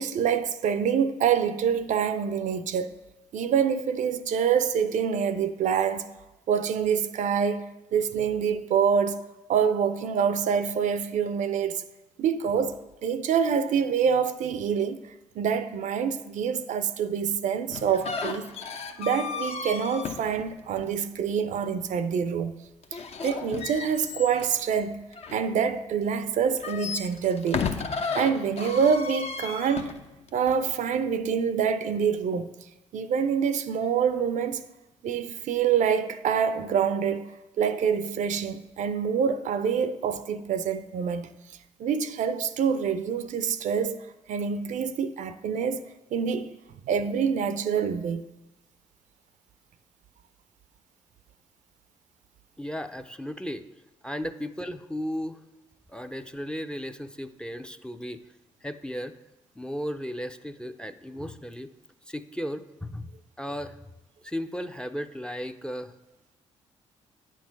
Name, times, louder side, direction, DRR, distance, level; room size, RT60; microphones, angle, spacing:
voice 1, 0.0-3.0 3.3-6.1 6.5-9.2 9.5-11.8 12.2-12.7 13.0-15.0 15.4-18.4 19.0-22.6 22.9-25.0 25.3-27.7 28.1-29.9 30.3-32.6 32.9-34.6 35.0-37.3 37.6-41.3 41.8-44.0 44.3-46.5 46.9-48.3, right 7 dB, 60° right, 0.5 m, -26 dB
sound 1, 17.7-21.0 22.8-25.9 26.4-30.6, left 5 dB, 45° left, 0.8 m, -34 dB
voice 2, 52.6-53.6 54.0-55.4 55.9-58.2 58.6-59.1 59.6-61.7 62.1-63.1 63.4-63.9 64.2-65.9, equal, 5° left, 0.5 m, -35 dB
8.9 x 4.6 x 5.8 m
hypercardioid pair, 45°, 15 cm